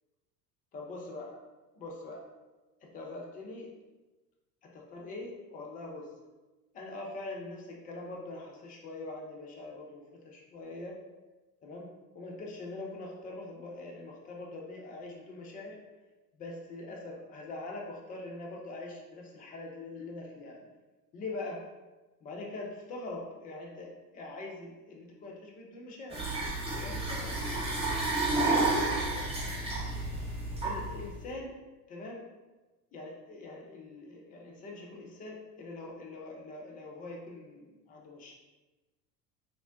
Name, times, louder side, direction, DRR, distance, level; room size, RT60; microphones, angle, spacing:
voice 1, 0.7-1.4 1.8-2.2 2.8-3.7 4.6-6.1 6.7-11.0 11.6-15.8 16.4-20.6 21.1-21.6 22.2-26.2 26.7-27.4 28.4-29.0 30.6-31.6 31.9-32.2 32.9-38.3, left 2 dB, 20° left, -1 dB, 0.3 m, -43 dB
sound 1, 26.1-31.2, right 2 dB, 10° right, 0.7 m, -31 dB
3.5 x 2.0 x 2.4 m, 1.2 s
figure-of-eight pair, 75°, 48 cm